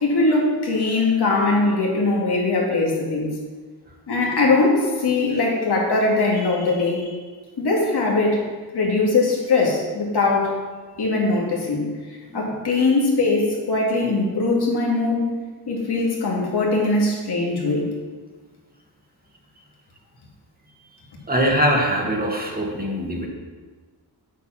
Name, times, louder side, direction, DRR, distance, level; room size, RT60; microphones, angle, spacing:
voice 1, 0.0-3.3 4.1-7.1 7.6-8.5 8.7-10.5 11.0-11.9 12.3-15.3 15.7-17.9, left 3 dB, 75° left, -2 dB, 2.5 m, -21 dB
voice 2, 12.3-12.7 21.3-23.3, equal, 20° right, 0 dB, 1.6 m, -22 dB
8.1 x 7.0 x 6.0 m, 1.4 s
wide cardioid pair, 130°, 40 cm